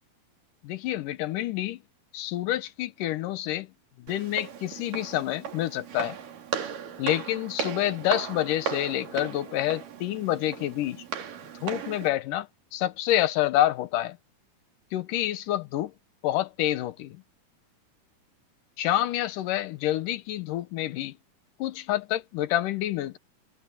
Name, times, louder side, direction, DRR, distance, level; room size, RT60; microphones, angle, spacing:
voice 1, 0.6-1.8 2.1-3.7 4.0-6.2 7.0-11.0 11.6-14.2 14.9-15.9 16.2-17.2 18.8-21.1 21.6-23.2, left 13 dB, 85° left, 2.5 m, -28 dB
Walk footsteps, 4.1-12.1, right 7 dB, 85° right, 4.0 m, -36 dB
omnidirectional pair, 3.8 m